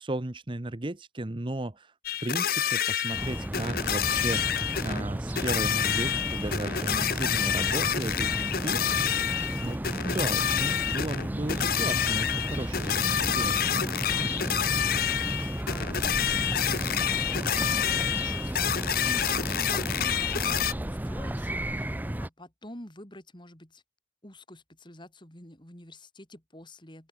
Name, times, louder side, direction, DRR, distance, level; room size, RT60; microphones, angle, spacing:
voice 1, 0.0-1.9 2.2-4.4 4.8-8.8 9.6-13.9 14.2-14.4, right 1 dB, 30° right, 0.9 m, -35 dB
sound 1, 2.0-5.0 5.4-20.7, left 9 dB, 55° left, 1.1 m, -28 dB
sound 2, 3.1-22.3, right 1 dB, 10° right, 0.5 m, -33 dB
voice 2, 15.6-21.8 22.2-23.8 24.2-27.1, left 1 dB, 25° left, 5.0 m, -48 dB
open air
head